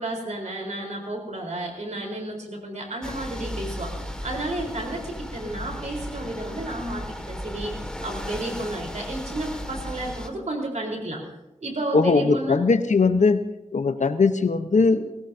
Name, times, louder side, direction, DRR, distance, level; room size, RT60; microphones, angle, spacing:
voice 1, 0.0-11.2 11.6-12.6, right 1 dB, 70° right, 0 dB, 4.1 m, -32 dB
sound 1, 3.0-10.3, equal, 5° left, 1.9 m, -35 dB
voice 2, 11.9-13.4 13.7-15.1, left 4 dB, 75° left, 9 dB, 0.9 m, -20 dB
19.5 x 17.5 x 2.8 m, 0.96 s
cardioid pair, 45°, 13 cm